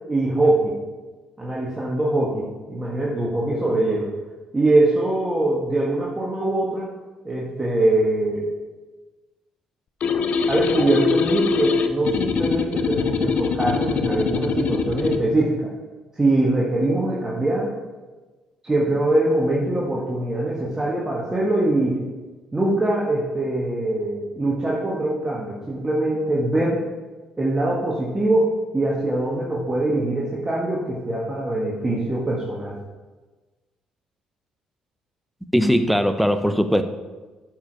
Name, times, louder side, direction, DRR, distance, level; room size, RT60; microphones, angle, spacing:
voice 1, 0.1-0.7 1.4-4.1 4.5-6.9 7.2-8.5 10.5-15.7 16.2-17.7 18.6-22.0 22.5-26.8 27.4-32.8, right 2 dB, 20° right, -5 dB, 1.6 m, -22 dB
sound 1, 10.0-15.2, left 6 dB, 55° left, 0.5 m, -23 dB
voice 2, 35.5-36.8, equal, ahead, 9 dB, 0.7 m, -19 dB
8.0 x 4.9 x 4.7 m, 1.3 s
hypercardioid pair, 50°, 3 cm